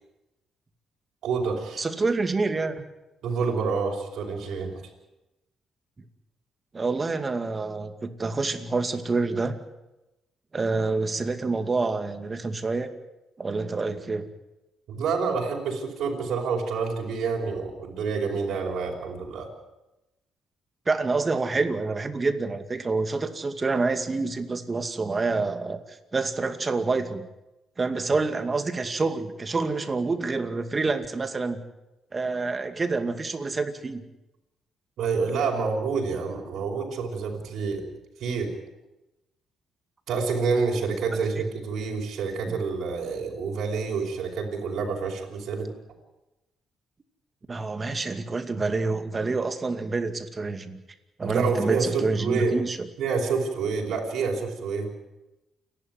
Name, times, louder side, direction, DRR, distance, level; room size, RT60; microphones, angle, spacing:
voice 1, 1.2-1.8 3.2-4.7 14.9-19.5 35.0-37.8 38.2-38.5 40.1-45.7 51.2-52.6 53.0-54.9, right 5 dB, 75° right, -1 dB, 5.2 m, -28 dB
voice 2, 1.8-2.8 6.7-9.6 10.5-12.9 13.4-14.3 20.9-25.8 26.1-27.3 27.8-31.6 32.1-34.0 41.4-41.5 42.5-42.6 47.5-50.8 51.2-52.9, right 3 dB, 30° right, 8 dB, 2.3 m, -27 dB
29.0 x 12.0 x 9.5 m, 0.99 s
cardioid pair, 90°, 0 cm